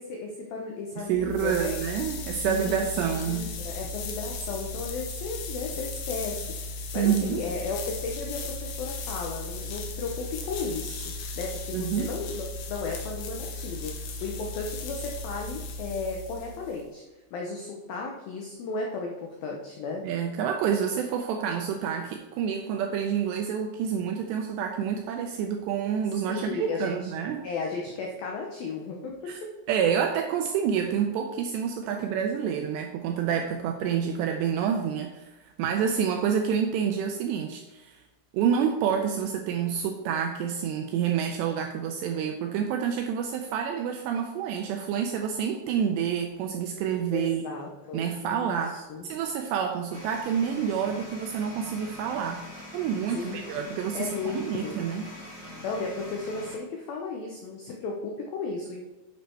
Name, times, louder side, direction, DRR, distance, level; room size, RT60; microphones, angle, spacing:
voice 1, 0.0-1.7 2.4-13.9 14.2-17.0 17.3-20.0 26.3-27.1 27.4-29.2 29.4-29.5 47.1-49.1 53.1-53.6 53.9-54.7 55.6-58.8, left 4 dB, 90° left, 0 dB, 2.0 m, -35 dB
voice 2, 1.0-3.4 6.9-7.4 11.7-12.1 20.0-27.4 29.3-29.4 29.7-38.0 38.3-47.4 47.9-52.4 52.7-55.0, right 8 dB, 85° right, 4 dB, 2.5 m, -28 dB
sound 1, 1.1-16.9, left 3 dB, 70° left, 2.4 m, -36 dB
sound 2, 49.9-56.6, left 1 dB, 25° right, 1.9 m, -43 dB
9.4 x 6.6 x 4.5 m, 1.1 s
omnidirectional pair, 5.6 m